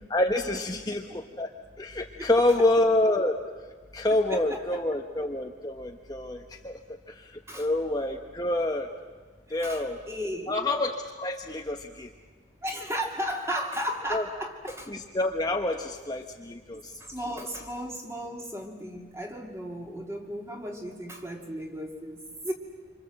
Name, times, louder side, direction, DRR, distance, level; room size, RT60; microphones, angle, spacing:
voice 1, 0.1-1.5 1.8-3.4 3.9-6.8 7.1-8.9 9.5-10.0 10.5-12.1 14.1-14.2 14.9-16.9, left 1 dB, 20° left, 3 dB, 1.0 m, -27 dB
voice 2, 4.1-4.8 7.5-7.7 9.5-10.7 12.6-14.9 16.7-22.5, equal, 15° right, 2 dB, 2.6 m, -35 dB
26.5 x 26.0 x 7.7 m, 1.4 s
head